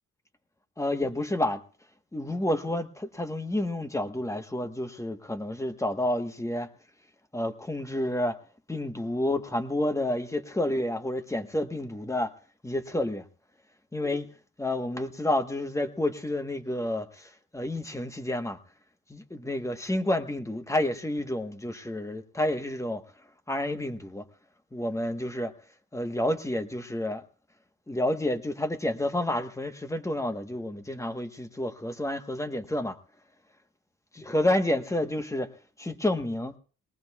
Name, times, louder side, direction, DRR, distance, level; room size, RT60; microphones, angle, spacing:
voice 1, 0.8-1.6 2.1-6.7 7.3-8.4 8.7-12.3 12.6-13.2 13.9-14.3 14.6-18.6 19.1-23.0 23.5-24.2 24.7-25.5 25.9-27.2 27.9-33.0 34.1-35.5 35.8-36.5, left 1 dB, 10° left, 1.2 m, -29 dB
21.0 x 18.5 x 2.3 m
cardioid pair, 90°, 30 cm